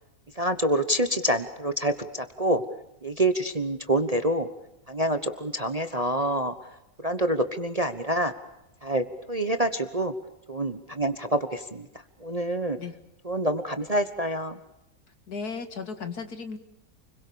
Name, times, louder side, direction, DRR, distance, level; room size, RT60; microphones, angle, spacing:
voice 1, 0.4-2.6 3.0-4.5 4.9-6.5 7.0-8.3 8.8-10.1 10.5-11.8 12.2-12.8 13.2-14.6, right 1 dB, 25° right, 10 dB, 1.1 m, -26 dB
voice 2, 15.3-16.6, left 5 dB, 60° left, 8 dB, 2.6 m, -35 dB
29.5 x 22.5 x 7.0 m, 0.85 s
omnidirectional pair, 1.9 m